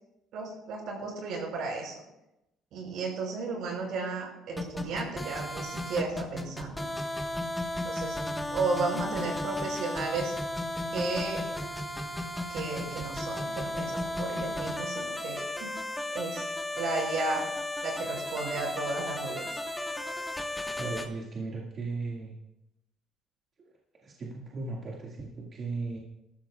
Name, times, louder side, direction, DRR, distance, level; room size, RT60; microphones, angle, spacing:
voice 1, 0.3-2.0 2.7-6.9 7.8-8.2 8.5-10.3 10.9-11.5 12.5-15.7 16.1-17.5 17.8-19.6, right 3 dB, 70° right, 0 dB, 5.8 m, -34 dB
sound 1, 4.6-21.1, left 1 dB, 5° left, 1.4 m, -34 dB
voice 2, 20.8-22.3 24.0-26.0, right 3 dB, 40° right, -3 dB, 2.0 m, -36 dB
20.0 x 13.5 x 2.4 m, 0.89 s
cardioid pair, 130°, 0 cm